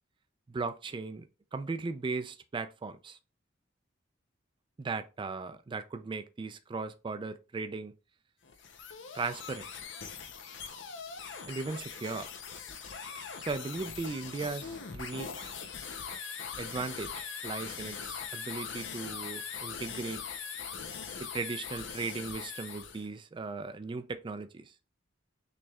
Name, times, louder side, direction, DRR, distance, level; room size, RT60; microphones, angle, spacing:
voice 1, 0.5-1.2 1.5-3.2 4.8-7.9 9.1-9.7 11.4-12.3 13.4-15.5 16.6-20.2 21.2-24.7, right 4 dB, 25° right, 0.3 m, -37 dB
sound 1, 8.4-23.1, left 6 dB, 70° left, 0.6 m, -41 dB
6.2 x 3.2 x 2.3 m
head